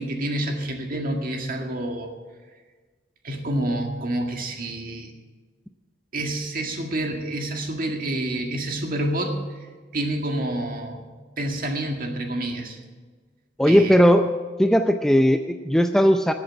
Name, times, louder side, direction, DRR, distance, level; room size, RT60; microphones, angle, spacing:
voice 1, 0.0-2.1 3.2-5.1 6.1-9.4 9.9-11.0 11.4-12.8 13.6-14.0, right 1 dB, 50° right, 3 dB, 2.0 m, -28 dB
voice 2, 13.6-14.3 14.6-16.3, equal, 5° left, 6 dB, 0.5 m, -17 dB
13.5 x 7.9 x 8.7 m, 1.4 s
head